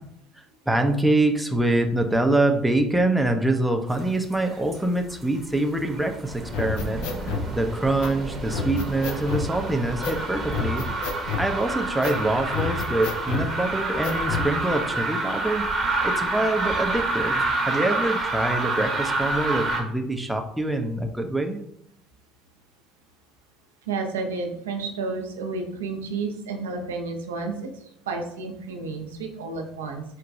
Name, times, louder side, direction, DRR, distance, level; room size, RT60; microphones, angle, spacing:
voice 1, 0.7-10.8 11.4-15.7 16.0-21.6, right 2 dB, 5° right, 4 dB, 0.5 m, -25 dB
sound 1, 3.9-4.8 5.1-19.8, right 2 dB, 35° right, 0.8 m, -28 dB
sound 2, 6.5-7.5 8.0-8.1 8.5-9.5 10.0-10.2 10.5-11.5 12.0-12.2 12.5-13.5 14.0-14.5, left 6 dB, 70° left, 0.4 m, -29 dB
voice 2, 23.9-30.0, right 4 dB, 85° right, 3 dB, 0.4 m, -31 dB
4.0 x 2.2 x 2.6 m, 0.74 s
hypercardioid pair, 65°, 0 cm